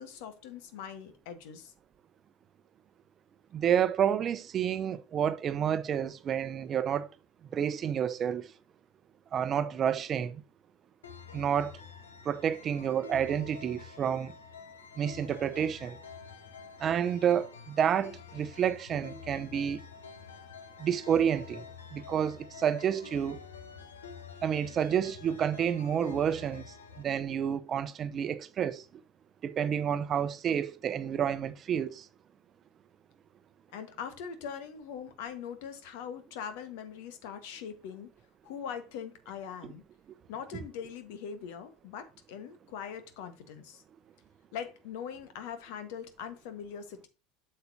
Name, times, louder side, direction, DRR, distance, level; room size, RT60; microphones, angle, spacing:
voice 1, 0.0-1.7 33.7-38.1 38.4-39.8 40.3-43.8 44.5-47.1, left 7 dB, 65° left, 1.3 m, -42 dB
voice 2, 3.5-7.1 7.5-8.5 9.3-10.4 11.3-11.7 12.3-14.3 15.0-16.0 16.8-19.8 20.8-21.6 21.9-23.4 24.4-28.8 29.4-32.0, right 8 dB, 40° right, 0.7 m, -29 dB
sound 1, 11.0-27.0, left 6 dB, 85° left, 1.0 m, -48 dB
7.9 x 6.7 x 2.7 m
hypercardioid pair, 75°, 0 cm